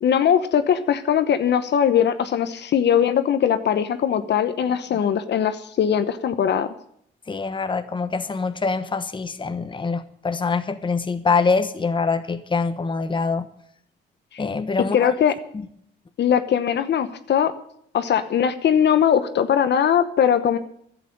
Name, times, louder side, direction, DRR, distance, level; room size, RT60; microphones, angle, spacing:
voice 1, 0.0-6.7 14.3-14.4 14.9-15.3 16.2-17.5 17.9-20.6, left 8 dB, 60° left, 10 dB, 1.0 m, -20 dB
voice 2, 7.3-13.5 14.4-15.1, left 4 dB, 25° left, 10 dB, 1.1 m, -24 dB
11.5 x 8.4 x 9.9 m, 0.69 s
cardioid pair, 90°, 20 cm